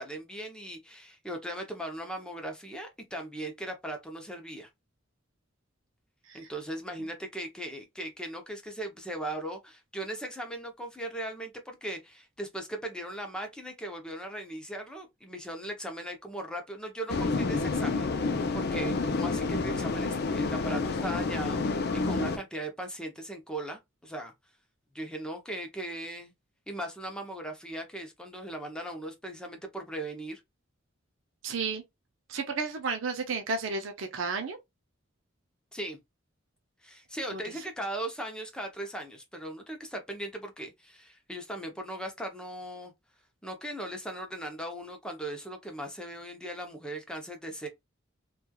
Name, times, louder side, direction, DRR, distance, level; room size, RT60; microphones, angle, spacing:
voice 1, 0.0-4.7 6.3-24.3 24.9-26.3 26.7-30.4 35.7-36.0 36.8-42.9 43.4-47.7, right 1 dB, 5° left, 0.6 m, -38 dB
sound 1, 17.1-22.4, left 3 dB, 55° left, 0.4 m, -29 dB
voice 2, 31.4-31.8 32.3-34.6 37.3-37.4, right 4 dB, 75° right, 0.5 m, -32 dB
3.0 x 2.3 x 2.3 m
head